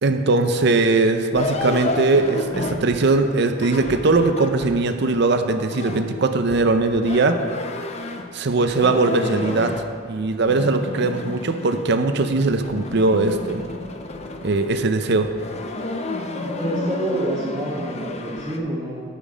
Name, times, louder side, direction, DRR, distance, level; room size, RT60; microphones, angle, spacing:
voice 1, 0.0-7.4 8.3-9.7 10.1-13.6 14.4-15.3, right 3 dB, 55° right, 7 dB, 0.6 m, -20 dB
sound 1, 1.3-4.9 5.7-8.4 8.7-9.9 10.3-12.1 12.3-14.7 15.2-18.6, left 2 dB, 35° left, 0.6 m, -31 dB
voice 2, 16.3-19.0, right 1 dB, 15° right, -9 dB, 1.2 m, -27 dB
8.4 x 7.4 x 5.0 m, 2.2 s
head